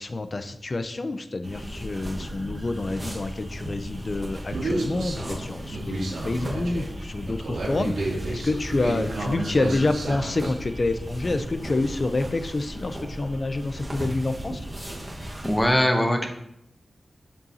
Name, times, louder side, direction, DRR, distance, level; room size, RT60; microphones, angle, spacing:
voice 1, 0.0-14.6, left 2 dB, 40° left, 10 dB, 0.6 m, -28 dB
sound 1, 1.4-15.7, equal, 20° right, 1.5 m, -36 dB
Human voice, 4.5-10.5, right 2 dB, 85° right, 2.0 m, -31 dB
voice 2, 15.4-16.3, equal, 15° left, 4 dB, 0.9 m, -21 dB
7.6 x 5.3 x 2.8 m, 0.77 s
wide cardioid pair, 80°, 0 cm